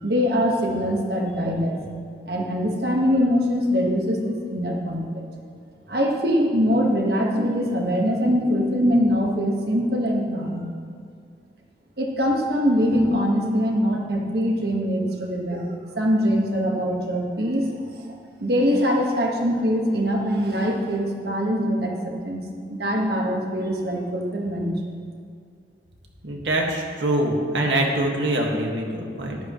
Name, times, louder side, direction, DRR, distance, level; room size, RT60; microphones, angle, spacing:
voice 1, 0.0-1.8 2.2-5.3 5.9-10.7 12.0-15.6 16.0-18.1 18.4-22.4 22.7-24.7, equal, 60° right, 0 dB, 1.5 m, -23 dB
voice 2, 26.2-29.4, right 1 dB, 80° right, 0 dB, 1.8 m, -24 dB
13.5 x 11.5 x 3.1 m, 2.2 s
head